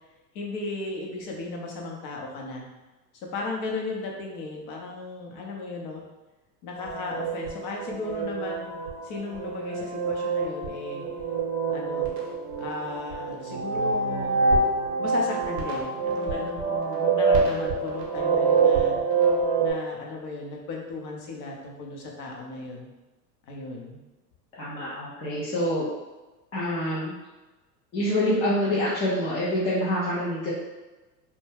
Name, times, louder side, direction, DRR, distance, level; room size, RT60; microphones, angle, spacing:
voice 1, 0.3-2.7 3.3-6.0 6.6-8.7 9.0-11.0 11.7-12.1 12.6-14.4 15.0-19.0 19.6-22.9 23.5-24.0, left 3 dB, 40° left, 0 dB, 0.7 m, -35 dB
sound 1, 6.7-19.7, right 4 dB, 35° right, 0.8 m, -26 dB
voice 2, 24.6-25.9 26.5-27.1 27.9-30.5, left 1 dB, 15° left, -7 dB, 0.3 m, -26 dB
2.2 x 2.1 x 3.3 m, 1.1 s
hypercardioid pair, 95°, 50 cm